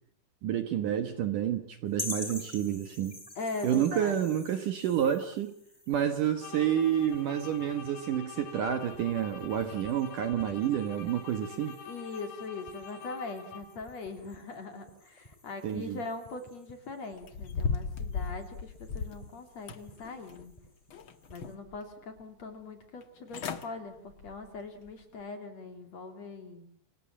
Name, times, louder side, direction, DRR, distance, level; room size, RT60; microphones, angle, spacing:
voice 1, 0.4-3.2 3.6-5.5 5.9-11.8 15.6-16.0, right 10 dB, 60° right, 9 dB, 2.4 m, -29 dB
sound 1, 1.9-21.5, left 2 dB, 10° left, 2.3 m, -48 dB
voice 2, 3.4-4.2 11.9-20.5 21.3-26.6, left 3 dB, 40° left, 7 dB, 3.4 m, -41 dB
sound 2, 6.4-13.9, left 5 dB, 70° left, 4.9 m, -46 dB
sound 3, 17.2-19.2 19.7-20.5 20.9-21.8 22.2-22.3 23.0-23.1 23.3-23.7 24.1-24.4 24.9-25.0, left 5 dB, 85° left, 1.1 m, -35 dB
29.5 x 25.5 x 7.4 m, 0.64 s
omnidirectional pair, 5.0 m